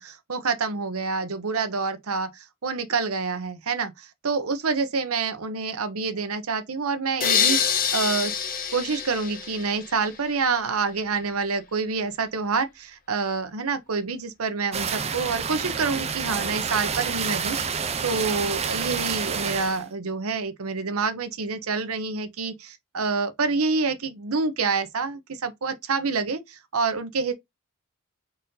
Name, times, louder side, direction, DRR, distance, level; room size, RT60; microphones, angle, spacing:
voice 1, 0.0-8.3 8.7-27.3, right 4 dB, 70° right, 0.8 m, -27 dB
sound 1, 7.2-10.2, left 7 dB, 40° left, 0.7 m, -26 dB
sound 2, 14.7-19.8, right 6 dB, 30° right, 0.5 m, -28 dB
4.1 x 2.6 x 3.9 m
head